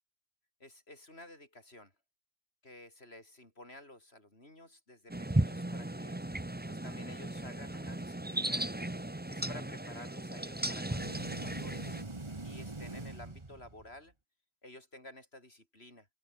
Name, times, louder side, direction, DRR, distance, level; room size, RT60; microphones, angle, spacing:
voice 1, 0.6-1.9 2.6-6.2 6.7-8.7 9.3-12.0 12.4-14.1 14.6-16.1, left 1 dB, 60° left, 6.9 m, -52 dB
sound 1, 5.1-12.0, right 1 dB, 10° right, 0.9 m, -36 dB
sound 2, 10.8-14.0, right 2 dB, 25° right, 1.7 m, -43 dB
omnidirectional pair, 1.2 m